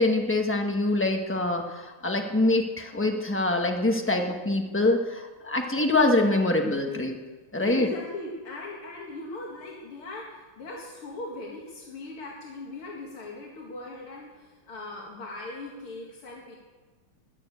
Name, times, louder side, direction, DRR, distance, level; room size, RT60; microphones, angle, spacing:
voice 1, 0.0-7.2 7.5-7.9, left 2 dB, 10° left, 3 dB, 0.9 m, -24 dB
voice 2, 7.6-16.6, left 2 dB, 80° left, -2 dB, 2.8 m, -39 dB
21.0 x 7.1 x 8.3 m, 1.3 s
omnidirectional pair, 2.3 m